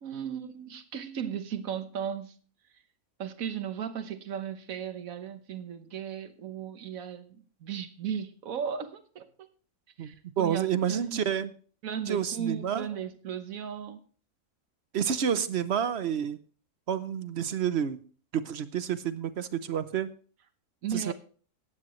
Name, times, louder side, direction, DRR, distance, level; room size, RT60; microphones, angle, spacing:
voice 1, 0.0-2.3 3.2-9.5 10.0-11.2 11.8-14.0 20.8-21.1, right 8 dB, 85° right, 10 dB, 1.5 m, -36 dB
voice 2, 10.0-11.5 12.1-12.9 14.9-16.4 16.9-18.0 18.3-20.1 20.9-21.1, right 8 dB, 55° right, 13 dB, 0.9 m, -29 dB
15.0 x 9.7 x 3.1 m, 0.41 s
omnidirectional pair, 1.4 m